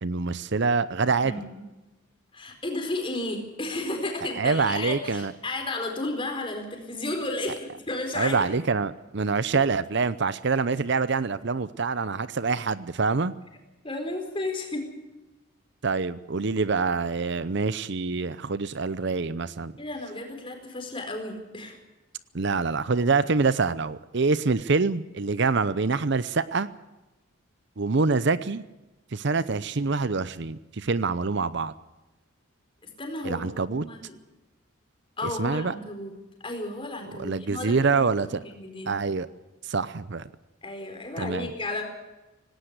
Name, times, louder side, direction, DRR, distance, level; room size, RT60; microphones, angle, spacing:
voice 1, 0.0-1.3 4.4-5.3 8.1-13.3 15.8-19.7 22.3-26.7 27.8-28.6 29.1-31.7 33.2-33.9 35.2-35.7 37.2-38.3 38.9-39.3 39.6-40.3 41.2-41.5, right 4 dB, 55° right, 16 dB, 0.7 m, -25 dB
voice 2, 1.2-1.6 2.3-8.5 13.8-14.9 19.8-21.8 33.0-34.1 35.2-36.1 36.4-38.0 38.3-38.9 40.6-41.8, left 2 dB, 25° left, 4 dB, 4.5 m, -33 dB
18.5 x 18.0 x 8.1 m, 1.0 s
head